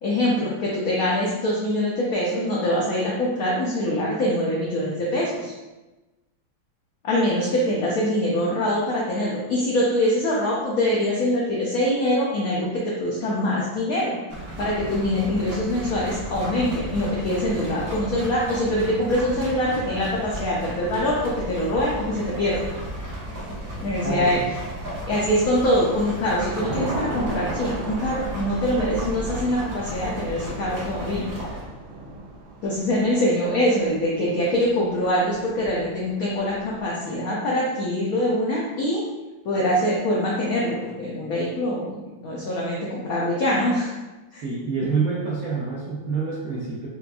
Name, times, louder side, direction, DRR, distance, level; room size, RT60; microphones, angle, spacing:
voice 1, 0.0-5.5 7.0-14.2 14.6-22.6 23.8-24.4 25.1-31.2 32.6-39.0 39.4-43.9 44.3-44.4, left 1 dB, 85° left, -4 dB, 0.8 m, -24 dB
sound 1, 14.3-31.6, right 1 dB, 45° right, 0.8 m, -34 dB
voice 2, 24.0-24.4 44.4-46.9, right 4 dB, 70° right, -6 dB, 0.8 m, -27 dB
Thunder / Rain, 24.7-25.3 25.7-36.8, right 2 dB, 85° right, 1.4 m, -37 dB
4.3 x 2.4 x 2.3 m, 1.1 s
omnidirectional pair, 2.1 m